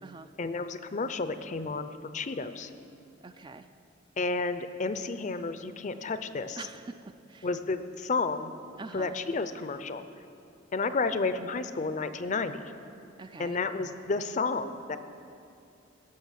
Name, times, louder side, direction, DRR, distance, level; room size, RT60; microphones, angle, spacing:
voice 1, 0.4-2.7 4.2-6.6 7.4-8.5 8.9-10.0 10.7-12.7 13.4-15.0, left 3 dB, 40° left, 11 dB, 0.5 m, -31 dB
voice 2, 3.2-3.7 6.6-7.5 8.8-9.1 13.2-13.6, right 3 dB, 25° right, 9 dB, 0.3 m, -44 dB
17.0 x 6.2 x 7.4 m, 2.7 s
head